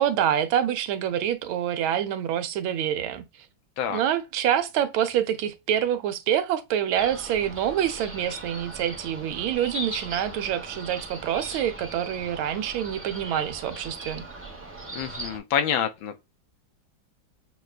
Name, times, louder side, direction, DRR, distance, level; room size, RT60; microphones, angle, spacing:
voice 1, 0.0-3.2 3.9-14.2, right 10 dB, 85° right, 1.5 m, -26 dB
sound 1, 6.9-15.4, right 2 dB, 15° right, 0.4 m, -39 dB
voice 2, 14.9-16.2, left 8 dB, 80° left, 1.5 m, -27 dB
6.4 x 2.3 x 2.4 m
omnidirectional pair, 2.2 m